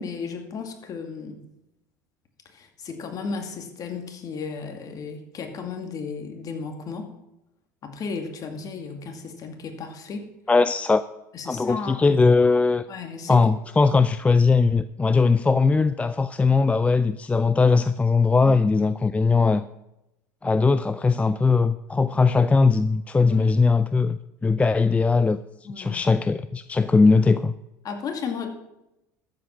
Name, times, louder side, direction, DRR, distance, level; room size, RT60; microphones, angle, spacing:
voice 1, 0.0-1.4 2.5-7.1 7.8-10.3 11.3-12.1 12.9-13.5 18.4-18.6 23.3-23.5 25.6-26.0 27.8-28.5, left 5 dB, 40° left, 4 dB, 2.4 m, -34 dB
voice 2, 10.5-11.0 11.5-12.8 13.3-19.6 20.4-25.4 25.8-27.5, left 4 dB, 15° left, 14 dB, 0.4 m, -20 dB
13.5 x 8.0 x 5.9 m, 0.91 s
hypercardioid pair, 80°, 9 cm